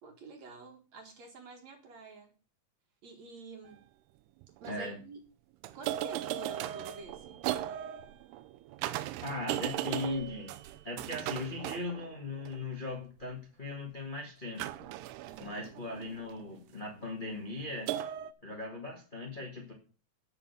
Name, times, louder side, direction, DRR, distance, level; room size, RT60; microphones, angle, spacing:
voice 1, 0.0-2.3 3.0-3.9 4.6-5.2 5.7-7.4 15.3-15.7, right 3 dB, 55° right, 3 dB, 2.4 m, -48 dB
sound 1, 3.7-3.8 4.4-4.8 5.6-12.6 14.6-16.5 17.9-18.3, right 13 dB, 85° right, 2.7 m, -37 dB
voice 2, 4.7-5.0 9.2-10.5 10.8-14.6 15.4-18.0 18.4-19.7, left 2 dB, 40° left, -1 dB, 0.7 m, -38 dB
8.6 x 6.3 x 8.1 m, 0.36 s
omnidirectional pair, 4.7 m